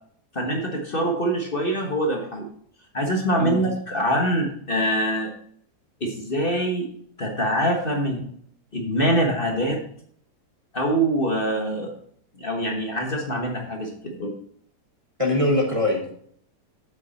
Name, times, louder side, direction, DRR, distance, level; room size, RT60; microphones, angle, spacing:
voice 1, 0.3-2.5 2.9-5.3 6.0-6.9 7.2-8.2 8.7-9.8 10.7-11.9 12.4-14.3, right 1 dB, 35° left, 0 dB, 1.5 m, -24 dB
voice 2, 15.2-16.1, left 2 dB, 20° right, 0 dB, 1.3 m, -22 dB
7.8 x 7.4 x 4.2 m, 0.62 s
omnidirectional pair, 1.8 m